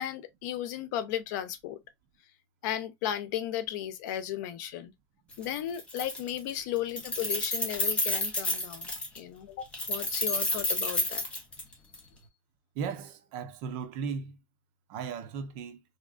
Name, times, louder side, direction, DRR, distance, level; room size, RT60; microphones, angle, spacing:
voice 1, 0.0-1.8 2.6-4.9 5.4-11.2, left 11 dB, 80° left, 0.7 m, -35 dB
Keys jangling, 5.3-5.4 5.7-6.5 6.8-9.2 9.7-12.0, left 2 dB, 10° left, 1.0 m, -30 dB
voice 2, 12.7-14.4 14.9-15.8, right 6 dB, 60° right, 0.8 m, -36 dB
3.5 x 2.8 x 2.4 m
cardioid pair, 160°, 10 cm